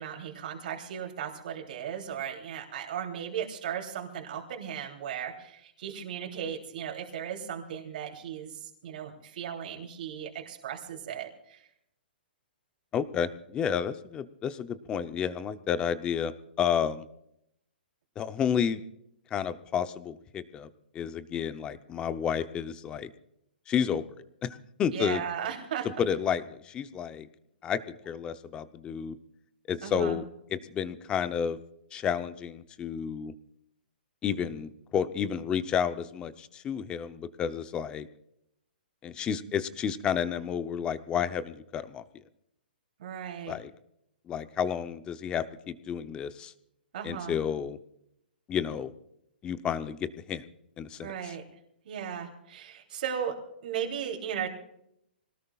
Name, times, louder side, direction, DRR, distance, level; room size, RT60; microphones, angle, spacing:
voice 1, 0.0-11.7 24.9-25.9 29.8-30.2 43.0-43.6 46.9-47.4 51.0-51.4 51.8-53.3 53.6-54.5, right 8 dB, 55° right, 1 dB, 3.2 m, -36 dB
voice 2, 12.9-16.3 16.6-17.0 18.2-18.8 19.3-20.7 20.9-23.1 23.7-24.0 24.4-25.2 26.0-27.3 27.6-29.2 29.7-30.2 30.5-31.6 31.9-33.3 34.2-38.1 39.0-42.0 43.5-43.7 44.3-46.5 47.0-47.8 48.5-48.9 49.4-50.5 50.8-51.3, left 8 dB, 15° left, 12 dB, 0.7 m, -31 dB
25.5 x 18.5 x 2.4 m, 0.75 s
hypercardioid pair, 155°, 6 cm